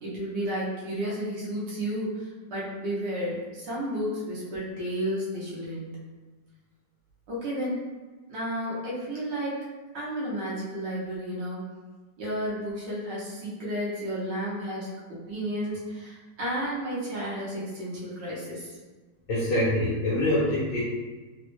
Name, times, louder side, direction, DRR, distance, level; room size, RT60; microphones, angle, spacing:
voice 1, 0.0-5.9 7.3-7.9 8.3-9.6 9.9-11.6 12.2-18.8, equal, 85° right, -8 dB, 1.6 m, -32 dB
voice 2, 19.3-20.8, left 1 dB, 75° left, -8 dB, 1.4 m, -25 dB
4.1 x 2.1 x 3.0 m, 1.3 s
omnidirectional pair, 1.9 m